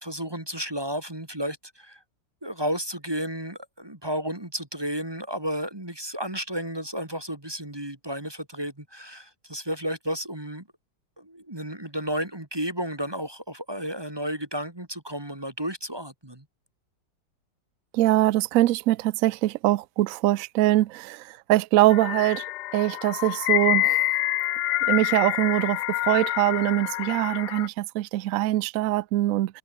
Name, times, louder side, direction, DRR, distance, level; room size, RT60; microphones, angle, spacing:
voice 1, 0.0-2.0 2.4-10.7 11.2-16.4, equal, 15° right, 1.9 m, -32 dB
voice 2, 17.9-22.4 22.7-24.0 24.9-29.6, right 15 dB, 70° right, 0.8 m, -23 dB
sound 1, 21.9-27.7, left 16 dB, 75° left, 1.1 m, -27 dB
omnidirectional pair, 1.9 m